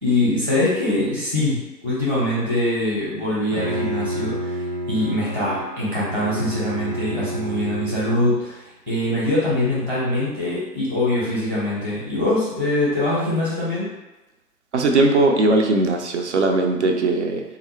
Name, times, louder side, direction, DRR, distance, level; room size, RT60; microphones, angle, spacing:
voice 1, 0.0-13.9, left 1 dB, 10° left, -11 dB, 0.4 m, -23 dB
Bowed string instrument, 3.3-8.4, right 1 dB, 85° right, 0.9 m, -30 dB
voice 2, 14.7-17.4, right 2 dB, 45° right, 3 dB, 0.5 m, -19 dB
3.9 x 2.4 x 3.0 m, 1.1 s
figure-of-eight pair, 125°, 49 cm